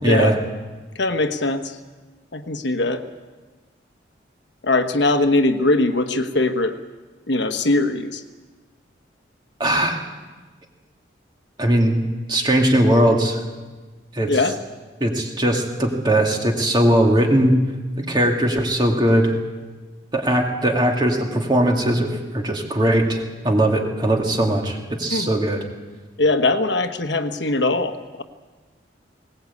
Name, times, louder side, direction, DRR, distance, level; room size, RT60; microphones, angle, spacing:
voice 1, 0.0-0.4 9.6-10.0 11.6-12.0 12.3-13.4 14.1-14.3 15.0-17.6 18.0-19.4 20.1-25.6, right 1 dB, 25° right, 2 dB, 2.3 m, -19 dB
voice 2, 0.9-1.8 2.3-3.0 4.6-6.7 7.3-8.2 14.3-14.6 25.1-25.3 26.2-28.2, left 2 dB, 70° left, 8 dB, 1.3 m, -21 dB
20.5 x 19.0 x 8.5 m, 1.3 s
head